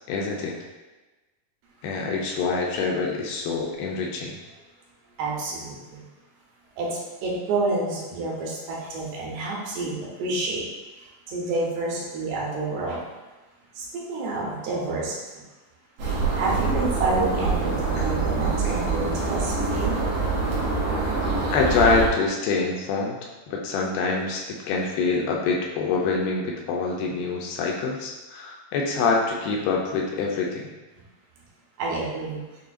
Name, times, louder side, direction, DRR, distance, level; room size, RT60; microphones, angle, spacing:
voice 1, 0.1-0.6 1.8-4.4 18.0-18.1 21.5-23.2 23.5-30.7, left 4 dB, 80° left, -1 dB, 2.3 m, -25 dB
voice 2, 5.2-6.0 6.8-10.6 11.0-13.0 13.8-15.2 16.4-20.0 31.8-32.4, right 2 dB, 85° right, -4 dB, 2.8 m, -29 dB
sound 1, 16.0-22.1, right 4 dB, 70° right, 2.1 m, -25 dB
6.8 x 2.3 x 2.4 m, 1.2 s
omnidirectional pair, 4.4 m